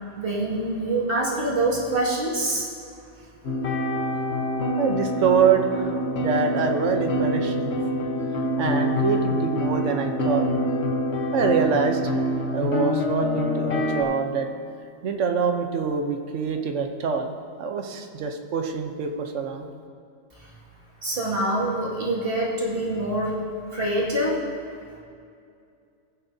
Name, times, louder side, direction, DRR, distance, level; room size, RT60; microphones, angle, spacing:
voice 1, 0.1-2.7 20.4-20.5 21.0-23.4 23.7-24.4, right 1 dB, 45° right, -5 dB, 2.3 m, -25 dB
sound 1, 3.4-14.0, equal, 55° left, 1.2 m, -25 dB
voice 2, 4.8-7.8 8.6-10.5 11.3-12.1 12.5-14.5 15.0-17.3 17.6-19.7, right 6 dB, 70° right, 5 dB, 1.1 m, -25 dB
16.5 x 9.9 x 2.7 m, 2.4 s
omnidirectional pair, 1.4 m